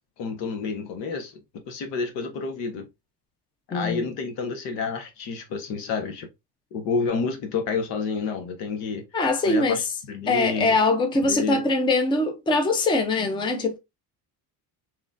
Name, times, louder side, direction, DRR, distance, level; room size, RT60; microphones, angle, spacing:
voice 1, 0.2-1.3 1.7-2.8 3.7-6.3 6.7-9.0 9.4-9.8 10.1-10.8 11.2-11.6, left 5 dB, 90° left, 1.2 m, -29 dB
voice 2, 3.7-4.0 9.1-9.9 10.3-13.8, left 2 dB, 10° left, 0.5 m, -22 dB
3.7 x 3.1 x 2.5 m
cardioid pair, 160°, 42 cm